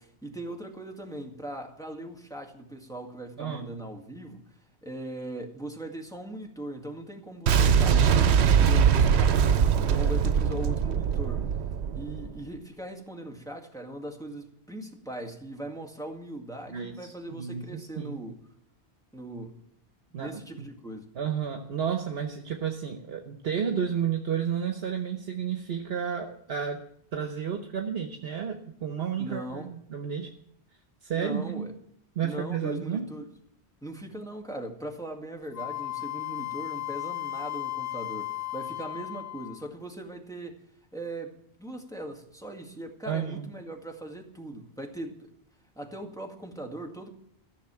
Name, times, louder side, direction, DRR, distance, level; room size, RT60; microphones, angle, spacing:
voice 1, 0.0-4.4 4.8-9.4 9.7-11.5 11.9-18.4 19.1-19.6 20.1-21.1 29.2-29.7 31.1-31.7 32.2-33.3 33.8-40.6 40.9-41.3 41.6-45.3 45.8-47.1, right 1 dB, 5° left, 1 dB, 2.0 m, -39 dB
Boom, 7.5-12.4, right 7 dB, 85° right, 1.0 m, -22 dB
voice 2, 16.7-18.2 20.1-20.7 21.1-26.8 27.1-30.3 31.0-31.7 32.2-33.1 43.1-43.5, right 7 dB, 70° right, 5 dB, 1.2 m, -32 dB
Wind instrument woodwind instrument, 35.5-39.7, left 15 dB, 65° left, 0.8 m, -35 dB
14.0 x 6.5 x 8.8 m, 0.68 s
omnidirectional pair, 1.1 m